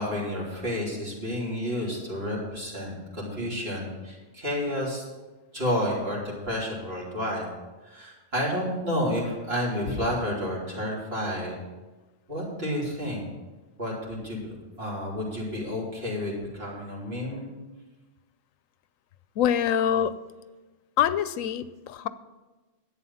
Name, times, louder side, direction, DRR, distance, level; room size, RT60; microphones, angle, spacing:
voice 1, 0.0-5.0 5.5-6.2 6.4-7.5 7.8-11.6 12.3-13.2 13.8-17.5, equal, 50° right, -4 dB, 3.6 m, -30 dB
voice 2, 19.4-20.1 21.0-22.1, left 9 dB, 85° left, 14 dB, 1.0 m, -25 dB
11.5 x 8.4 x 5.6 m, 1.2 s
omnidirectional pair, 1.3 m